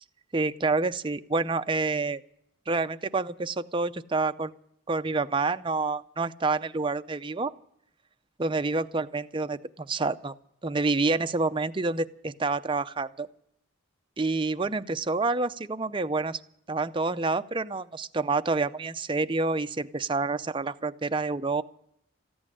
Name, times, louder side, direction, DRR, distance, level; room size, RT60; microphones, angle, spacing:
voice 1, 0.3-2.2 2.7-4.5 4.9-7.5 8.4-10.3 10.6-13.3 14.2-16.4 16.7-21.6, right 3 dB, 25° right, 10 dB, 0.5 m, -28 dB
14.5 x 8.8 x 9.8 m, 0.73 s
head